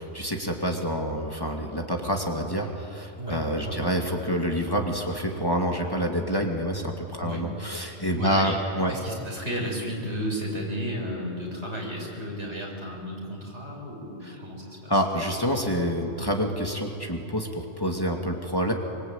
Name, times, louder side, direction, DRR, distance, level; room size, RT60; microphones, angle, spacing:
voice 1, 0.0-8.9 14.2-14.4 14.9-18.7, equal, 20° left, 2 dB, 2.5 m, -27 dB
voice 2, 3.2-3.9 7.2-7.4 8.1-8.6 8.9-15.0, equal, 75° right, -1 dB, 6.6 m, -33 dB
25.0 x 25.0 x 9.0 m, 2.7 s
omnidirectional pair, 1.2 m